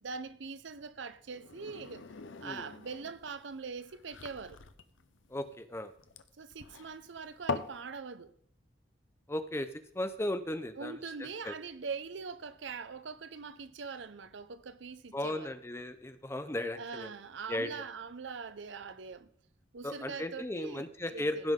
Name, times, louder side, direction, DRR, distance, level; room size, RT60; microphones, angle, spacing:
voice 1, 0.0-2.0 2.4-4.6 6.4-8.3 10.8-15.5 16.7-19.3 19.7-21.5, right 5 dB, 70° right, 0.6 m, -42 dB
sound 1, 1.3-7.8, left 4 dB, 80° left, 0.7 m, -42 dB
voice 2, 5.3-5.9 9.3-9.7 9.9-11.5 15.1-17.1 17.5-17.8 19.8-21.5, left 1 dB, 15° left, 0.6 m, -36 dB
16.0 x 5.7 x 3.7 m
head